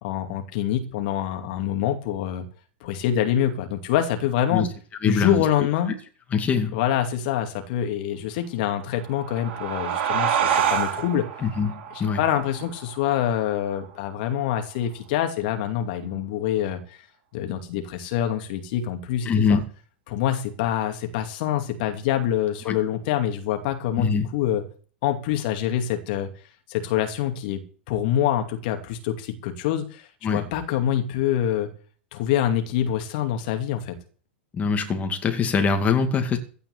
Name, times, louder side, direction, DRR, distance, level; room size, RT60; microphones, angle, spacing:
voice 1, 0.0-2.4 2.8-4.7 5.0-5.9 6.7-11.3 11.9-17.0 17.3-19.6 20.1-24.6 25.0-26.3 26.7-31.7 32.1-34.0, left 10 dB, 55° left, 5 dB, 2.6 m, -25 dB
voice 2, 5.0-5.4 6.3-6.8 11.4-12.2 19.3-19.6 22.7-22.8 24.0-24.3 30.2-30.5 34.5-36.4, left 5 dB, 25° left, 5 dB, 2.4 m, -23 dB
sound 1, 8.9-14.1, right 8 dB, 50° right, 4.4 m, -28 dB
16.0 x 5.6 x 9.8 m, 0.41 s
figure-of-eight pair, 100°, 6 cm